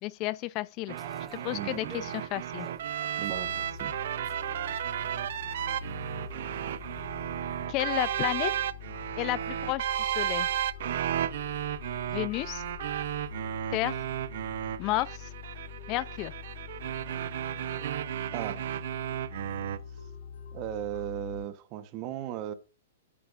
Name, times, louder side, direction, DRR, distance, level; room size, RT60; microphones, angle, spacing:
voice 1, 0.0-0.9 1.4-2.7 7.7-8.5 9.2-10.5 12.1-12.6 13.7-13.9 14.8-15.3 15.9-16.3, left 17 dB, 35° left, 0.4 m, -31 dB
sound 1, 0.9-7.7, right 2 dB, 5° right, 1.1 m, -51 dB
sound 2, 0.9-19.8, right 11 dB, 60° right, 0.6 m, -33 dB
voice 2, 1.5-1.9 3.2-4.0 18.3-18.6 20.5-22.5, right 12 dB, 35° right, 0.9 m, -36 dB
sound 3, 3.3-21.4, left 6 dB, 75° left, 4.9 m, -44 dB
9.4 x 8.5 x 2.4 m
hypercardioid pair, 150°, 0 cm